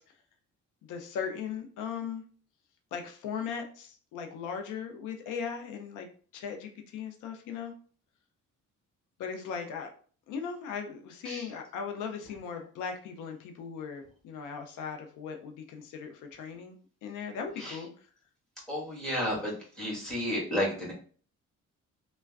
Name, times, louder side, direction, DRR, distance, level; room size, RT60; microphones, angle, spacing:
voice 1, 0.8-2.2 2.9-6.1 6.3-7.7 9.2-9.9 10.3-16.8 17.0-17.9, left 6 dB, 90° left, 4 dB, 0.5 m, -38 dB
voice 2, 18.7-19.5 19.8-20.9, equal, ahead, -3 dB, 1.4 m, -31 dB
3.2 x 2.1 x 2.3 m, 0.43 s
cardioid pair, 90°, 30 cm